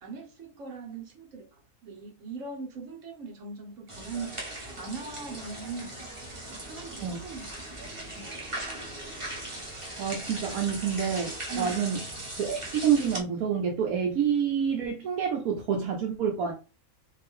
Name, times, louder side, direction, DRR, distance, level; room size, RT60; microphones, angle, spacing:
voice 1, 0.0-1.5 1.8-4.4 4.8-6.0 6.5-7.5 8.2-8.3 11.5-11.8, right 4 dB, 60° right, 1 dB, 1.5 m, -40 dB
sound 1, 3.9-13.2, right 1 dB, 20° right, 1.3 m, -39 dB
voice 2, 10.0-12.0 12.3-16.5, right 7 dB, 80° right, 1 dB, 1.2 m, -28 dB
5.0 x 2.5 x 3.7 m, 0.32 s
omnidirectional pair, 1.5 m